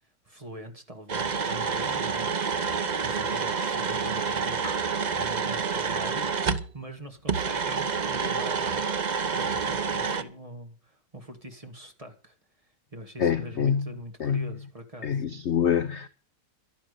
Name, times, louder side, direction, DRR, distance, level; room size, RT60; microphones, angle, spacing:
voice 1, 0.2-2.4 3.0-8.8 9.2-12.4 12.9-15.2, equal, 20° right, 1.8 m, -43 dB
sound 1, 1.1-6.7 7.3-10.2, right 5 dB, 45° right, 0.5 m, -28 dB
voice 2, 13.2-13.9 14.2-14.5 15.0-16.1, left 7 dB, 55° left, 0.8 m, -26 dB
11.5 x 10.5 x 6.7 m
omnidirectional pair, 1.9 m